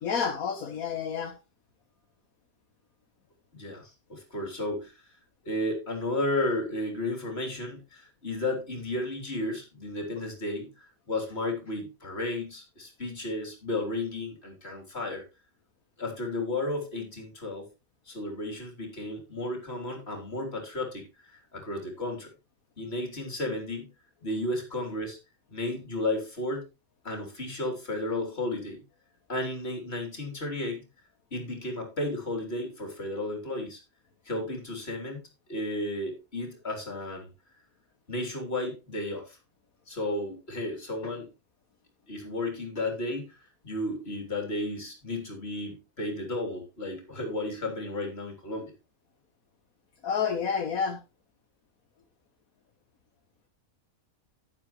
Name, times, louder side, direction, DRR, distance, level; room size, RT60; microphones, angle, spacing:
voice 1, 0.0-1.3 50.0-51.0, left 6 dB, 80° left, 4 dB, 1.7 m, -29 dB
voice 2, 3.5-5.0 5.5-15.2 16.0-17.7 18.1-22.3 22.8-23.9 24.2-25.2 25.5-26.7 27.0-28.8 29.3-30.9 31.3-33.8 34.3-37.3 38.1-39.4 39.9-41.3 42.1-43.3 43.6-48.7, left 1 dB, 45° left, 3 dB, 3.7 m, -33 dB
10.5 x 9.9 x 3.1 m, 0.27 s
omnidirectional pair, 1.5 m